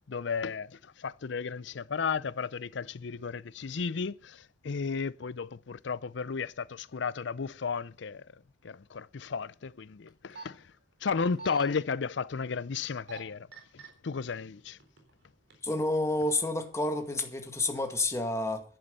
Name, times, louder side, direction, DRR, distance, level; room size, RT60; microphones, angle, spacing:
voice 1, 0.1-8.3 8.6-10.6 11.0-13.5 13.7-14.8, left 5 dB, 65° left, 0.6 m, -34 dB
sound 1, 10.1-10.4 11.1-11.7 12.8-13.2 13.5-13.9 14.6-15.1 15.5-15.6, right 4 dB, 65° right, 3.9 m, -43 dB
voice 2, 15.6-18.6, left 2 dB, 15° left, 2.0 m, -29 dB
11.0 x 10.5 x 6.8 m
head